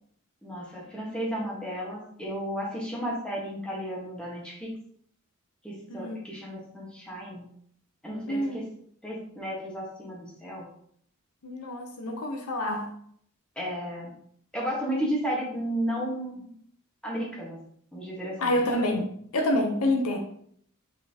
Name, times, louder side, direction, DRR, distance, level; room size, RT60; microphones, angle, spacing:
voice 1, 0.4-4.7 5.6-7.5 8.0-8.4 9.0-10.6 13.6-14.1 14.5-16.5 17.0-17.6 17.9-18.5, equal, 5° left, -4 dB, 1.3 m, -33 dB
voice 2, 8.3-8.6 11.4-12.9 18.4-20.2, left 1 dB, 90° left, 3 dB, 0.7 m, -27 dB
4.4 x 4.2 x 2.8 m, 0.63 s
head